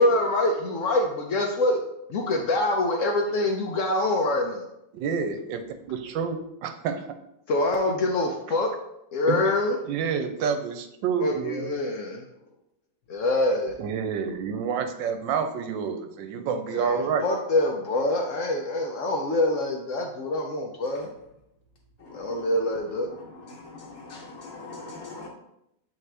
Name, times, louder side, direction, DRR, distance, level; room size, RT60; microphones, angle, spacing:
voice 1, 0.0-1.8 2.1-4.6 7.5-8.7 9.1-9.8 11.2-12.2 13.1-13.7 16.7-21.1 22.1-23.1, left 2 dB, 80° left, 0.7 m, -25 dB
voice 2, 4.9-7.1 9.3-9.5 9.8-11.8 13.8-17.3, right 6 dB, 75° right, 1.3 m, -29 dB
voice 3, 22.0-22.5 23.1-25.3, left 3 dB, 55° left, 1.0 m, -42 dB
7.2 x 4.0 x 3.3 m
omnidirectional pair, 2.1 m